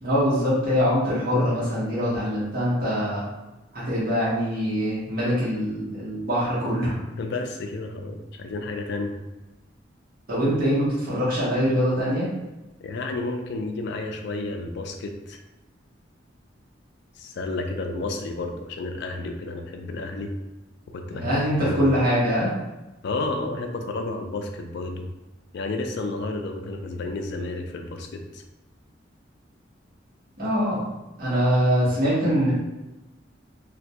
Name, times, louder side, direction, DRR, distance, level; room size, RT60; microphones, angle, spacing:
voice 1, 0.0-3.2 3.7-7.0 10.3-12.3 21.1-22.5 30.4-30.8 31.2-32.5, equal, 50° right, -9 dB, 0.8 m, -23 dB
voice 2, 7.1-9.1 12.8-15.4 17.2-20.3 20.9-22.0 23.0-25.0 25.5-28.4, left 2 dB, 60° left, 4 dB, 0.3 m, -31 dB
2.1 x 2.1 x 2.7 m, 1.0 s
head